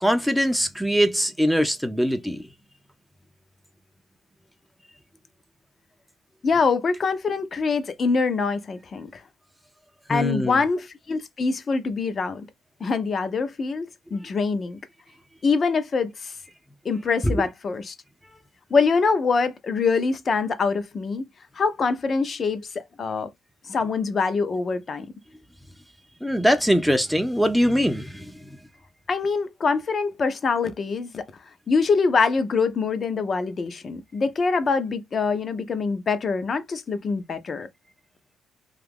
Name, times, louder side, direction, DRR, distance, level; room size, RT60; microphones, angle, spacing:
voice 1, 0.0-2.4 10.1-10.6 17.2-17.3 26.2-28.3, equal, ahead, 0.5 m, -22 dB
voice 2, 6.4-9.2 10.1-12.5 12.8-14.8 15.4-16.3 16.8-17.9 18.7-21.2 21.6-23.3 23.7-25.1 29.1-31.2 31.7-37.7, left 4 dB, 45° left, 0.6 m, -24 dB
2.8 x 2.4 x 3.5 m
cardioid pair, 90°, 0 cm